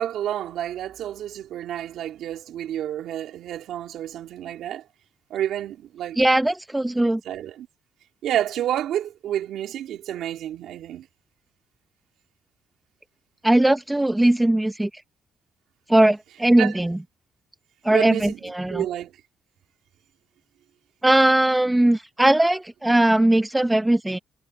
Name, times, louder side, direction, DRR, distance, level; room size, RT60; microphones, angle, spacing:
voice 1, 0.0-4.8 5.3-6.2 7.3-7.7 8.2-11.1 16.6-16.7 17.9-19.1, right 11 dB, 80° right, 3.6 m, -29 dB
voice 2, 6.2-7.2 13.4-14.9 15.9-17.0 17.8-18.9 21.0-24.2, right 1 dB, 10° right, 0.9 m, -19 dB
cardioid pair, 90°, 0 cm